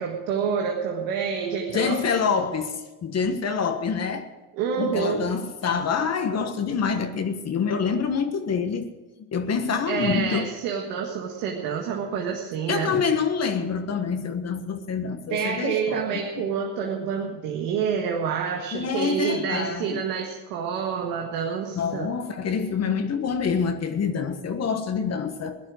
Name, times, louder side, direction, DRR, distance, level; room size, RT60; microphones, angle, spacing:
voice 1, 0.0-2.0 4.5-5.3 9.9-12.9 15.3-22.1, right 7 dB, 90° right, 1.7 m, -28 dB
voice 2, 1.7-4.3 4.8-8.9 9.3-10.5 12.7-16.4 18.7-20.0 21.8-25.6, left 6 dB, 50° left, 1.5 m, -26 dB
16.5 x 11.0 x 6.3 m
supercardioid pair, 80°, 34 cm